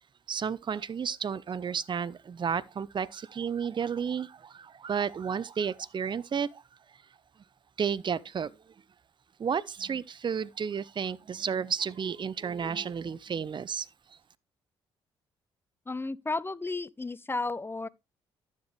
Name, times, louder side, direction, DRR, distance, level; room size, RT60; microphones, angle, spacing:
voice 1, 0.3-6.6 7.8-8.5 9.4-13.9, right 7 dB, 40° right, 0.7 m, -32 dB
voice 2, 15.9-17.9, left 3 dB, 20° left, 0.6 m, -33 dB
11.5 x 7.4 x 3.2 m
hypercardioid pair, 45°, 13 cm